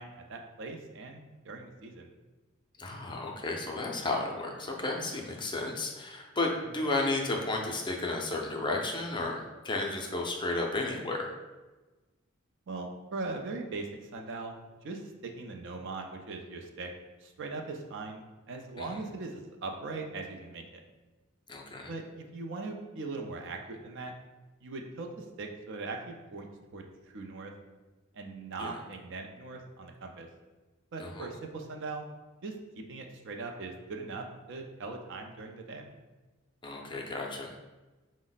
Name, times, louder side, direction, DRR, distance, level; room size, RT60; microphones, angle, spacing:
voice 1, 0.0-2.1 12.7-13.9 14.1-14.5 14.8-16.9 17.2-20.8 21.9-24.1 24.6-26.8 27.1-27.5 28.1-30.3 30.9-32.1 32.4-32.5 32.9-35.8, right 3 dB, 60° right, 3 dB, 0.5 m, -40 dB
voice 2, 2.8-11.3 18.8-19.0 21.5-21.9 28.6-28.8 31.0-31.3 36.6-37.6, left 2 dB, 25° left, 1 dB, 0.5 m, -33 dB
5.0 x 2.1 x 3.9 m, 1.2 s
head